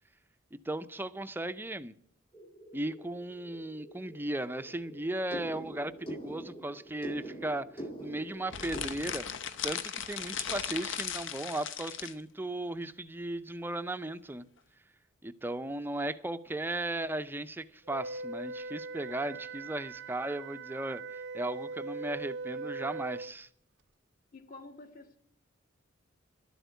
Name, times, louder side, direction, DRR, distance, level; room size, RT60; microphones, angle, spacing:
voice 1, 0.5-1.9 2.7-9.3 9.6-14.5 15.2-23.5, right 1 dB, 10° right, 0.5 m, -36 dB
sound 1, 2.3-8.8, right 1 dB, 25° left, 2.2 m, -45 dB
sound 2, 8.5-12.2, left 8 dB, 65° left, 0.8 m, -37 dB
Wind instrument woodwind instrument, 17.9-23.3, right 3 dB, 60° right, 0.5 m, -40 dB
voice 2, 24.3-25.2, left 3 dB, 45° left, 1.5 m, -49 dB
12.0 x 8.1 x 9.2 m
head